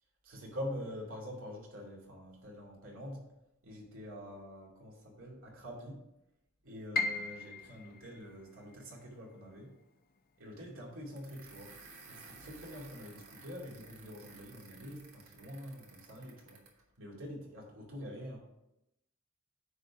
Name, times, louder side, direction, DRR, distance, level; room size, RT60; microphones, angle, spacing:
voice 1, 0.2-3.3 3.6-6.1 6.6-9.7 10.4-11.8 12.1-16.6 17.0-18.4, equal, 70° right, -2 dB, 2.4 m, -45 dB
Piano, 6.9-12.9 13.2-14.4 14.8-14.9 15.6-15.9, left 4 dB, 45° left, 0.6 m, -41 dB
sound 1, 11.2-16.8, right 4 dB, 85° right, 1.6 m, -55 dB
9.6 x 3.8 x 5.8 m, 0.88 s
head